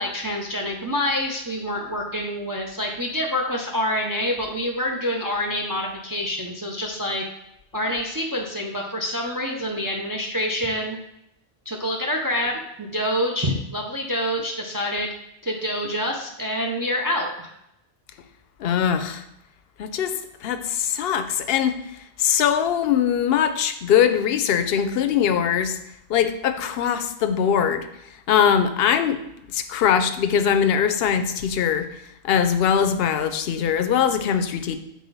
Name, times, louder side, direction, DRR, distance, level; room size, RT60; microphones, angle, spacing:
voice 1, 0.0-7.2 7.7-11.0 11.7-15.1 15.4-17.5, left 1 dB, 25° right, 1 dB, 0.6 m, -27 dB
voice 2, 18.6-19.2 19.8-20.1 20.4-21.8 22.2-25.8 26.1-27.9 28.3-29.2 29.5-31.9 32.2-34.8, left 8 dB, 65° left, 10 dB, 0.8 m, -21 dB
6.3 x 4.4 x 4.0 m, 0.83 s
omnidirectional pair, 1.1 m